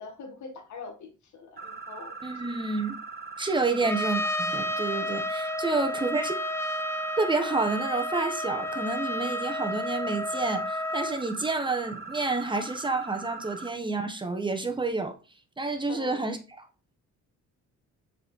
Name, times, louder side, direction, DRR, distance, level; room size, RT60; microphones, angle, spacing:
voice 1, 0.0-2.1 3.8-4.0 5.9-6.1 15.9-16.3, left 4 dB, 70° left, 1.8 m, -43 dB
sound 1, 1.6-13.7, right 4 dB, 35° right, 1.3 m, -41 dB
voice 2, 2.2-3.0 3.4-6.3 7.2-15.1 15.6-16.4, right 3 dB, 15° right, 1.4 m, -29 dB
Trumpet, 3.8-11.2, left 1 dB, 10° left, 0.7 m, -31 dB
6.7 x 4.8 x 3.8 m
cardioid pair, 90°, 30 cm